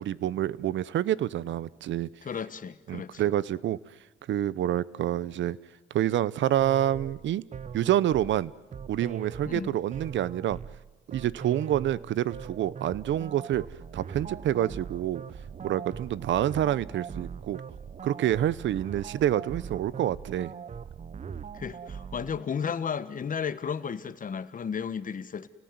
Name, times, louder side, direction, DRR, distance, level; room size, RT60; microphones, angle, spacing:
voice 1, 0.0-2.1 2.9-3.8 4.3-5.6 5.9-7.4 7.7-8.5 8.9-10.6 11.1-13.7 13.9-15.2 15.6-17.6 18.0-20.5, right 12 dB, 70° right, 21 dB, 0.8 m, -27 dB
voice 2, 2.2-3.2 9.4-9.8 21.5-25.5, left 7 dB, 45° left, 14 dB, 1.5 m, -33 dB
sound 1, 6.6-22.4, right 6 dB, 35° right, 0.8 m, -41 dB
29.5 x 18.0 x 9.5 m, 1.2 s
cardioid pair, 90°, 20 cm